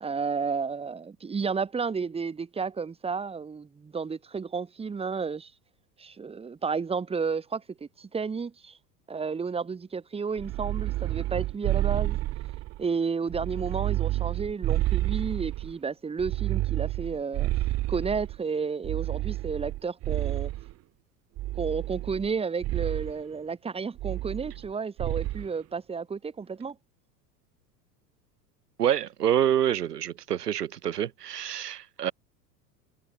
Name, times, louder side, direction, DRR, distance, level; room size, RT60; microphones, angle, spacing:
voice 1, 0.0-5.5 6.0-8.8 9.1-12.2 12.8-17.5 17.9-20.5 21.5-26.7, right 5 dB, 10° right, 1.6 m, -32 dB
sound 1, 10.4-12.8 13.3-15.7 16.2-18.4 18.8-20.7 21.4-22.3 22.6-23.1 24.0-24.7 25.0-25.5, right 16 dB, 30° right, 1.6 m, -30 dB
voice 2, 28.8-32.1, right 10 dB, 70° right, 1.0 m, -27 dB
figure-of-eight pair, 85°, 48 cm